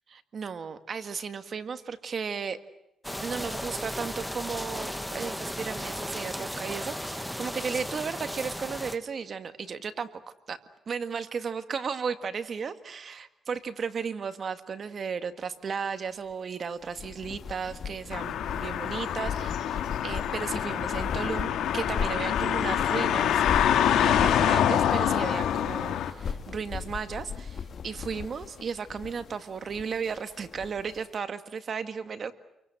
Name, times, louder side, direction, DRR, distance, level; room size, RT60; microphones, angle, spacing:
voice 1, 0.1-2.6 3.2-10.1 10.5-10.6 10.9-23.4 23.9-32.3, right 6 dB, 50° right, 9 dB, 1.8 m, -35 dB
sound 1, 3.0-9.0, equal, ahead, 1.6 m, -35 dB
sound 2, 16.8-31.0, left 6 dB, 55° left, 2.1 m, -38 dB
sound 3, 18.1-26.1, left 10 dB, 90° left, 2.1 m, -26 dB
28.5 x 23.5 x 7.8 m, 0.88 s
cardioid pair, 100°, 0 cm